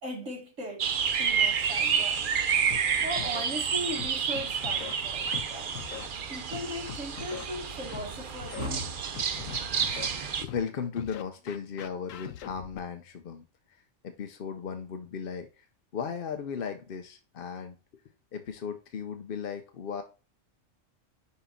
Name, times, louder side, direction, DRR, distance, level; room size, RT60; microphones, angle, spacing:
voice 1, 0.0-0.9 1.2-2.2 3.0-5.8 6.3-9.5, equal, 75° right, 1.8 m, -38 dB
sound 1, 0.8-10.4, right 7 dB, 50° right, 0.7 m, -29 dB
Scratching (performance technique), 2.7-2.8 3.2-3.4 4.0-4.9 5.3-5.5 5.8-6.1 6.5-7.4 7.9-8.0 8.4-8.7 9.1-10.1 10.5-10.6 11.0-12.8, left 12 dB, 85° left, 1.0 m, -41 dB
voice 2, 9.3-9.9 10.1-13.4 13.7-15.7 15.9-17.8 18.3-20.0, left 6 dB, 55° left, 0.7 m, -36 dB
5.1 x 4.1 x 5.7 m
omnidirectional pair, 1.3 m